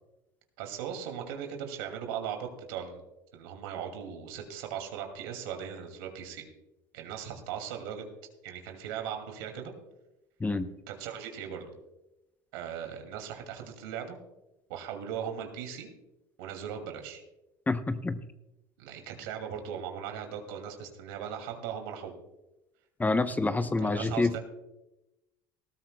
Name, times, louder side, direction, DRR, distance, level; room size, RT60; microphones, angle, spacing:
voice 1, 0.6-3.0 3.3-6.5 6.9-8.0 8.4-9.7 10.9-11.7 12.5-14.2 14.7-15.9 16.4-17.2 18.8-22.1 23.8-24.4, right 8 dB, 80° right, 4 dB, 2.4 m, -38 dB
voice 2, 10.4-10.7 17.7-18.2 23.0-24.4, left 3 dB, 15° left, 11 dB, 0.7 m, -27 dB
19.0 x 13.5 x 2.2 m, 0.96 s
hypercardioid pair, 85°, 11 cm